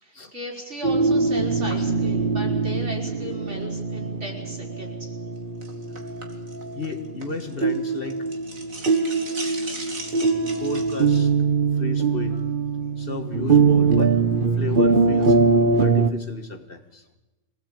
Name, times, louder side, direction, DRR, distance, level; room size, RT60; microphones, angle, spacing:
voice 1, 0.0-5.1, left 1 dB, 60° right, -1 dB, 5.0 m, -36 dB
sound 1, 0.8-16.1, right 4 dB, 40° right, 1.2 m, -22 dB
sound 2, 5.6-7.8 8.0-11.2, right 2 dB, 85° right, 3.0 m, -38 dB
voice 2, 6.7-8.3 10.6-11.3 11.8-12.4 13.0-14.1 14.5-15.4 15.8-17.0, left 3 dB, 45° left, 6 dB, 1.7 m, -33 dB
24.0 x 18.0 x 9.0 m, 1.1 s
omnidirectional pair, 1.4 m